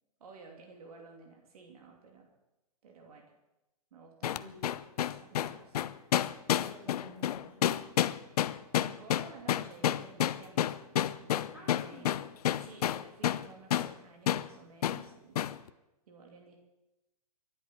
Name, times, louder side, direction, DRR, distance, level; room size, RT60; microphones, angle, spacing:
voice 1, 0.2-2.3 2.8-3.3 3.9-4.5 5.0-5.8 8.7-10.7 11.2-12.3 12.6-15.4 16.1-16.6, right 4 dB, 70° right, 1 dB, 2.9 m, -53 dB
sound 1, 4.2-13.5 13.7-13.9 14.3-14.5 14.8-15.0 15.4-15.6, left 11 dB, 80° left, 0.6 m, -29 dB
voice 2, 4.2-4.9 5.5-5.6 6.5-7.7 11.5-12.1, left 1 dB, 5° right, -3 dB, 6.2 m, -52 dB
24.5 x 11.0 x 4.5 m, 0.97 s
hypercardioid pair, 145°, 19 cm